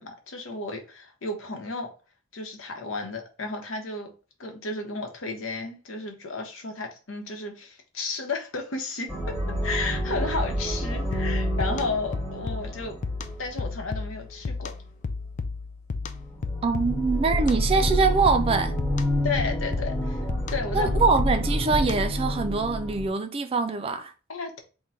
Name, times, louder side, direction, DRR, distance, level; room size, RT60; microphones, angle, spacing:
voice 1, 0.0-1.9 2.3-4.1 4.4-9.1 9.6-13.0 13.4-14.7 19.2-20.2 20.5-21.0 24.3-24.6, left 3 dB, 85° left, 0.9 m, -33 dB
sound 1, 9.1-13.9 16.0-23.1, equal, 15° left, 1.1 m, -28 dB
sound 2, 11.1-22.3, left 4 dB, 40° left, 0.3 m, -34 dB
voice 2, 16.6-18.7 20.7-24.1, right 4 dB, 30° right, 0.4 m, -24 dB
3.7 x 2.2 x 4.1 m
head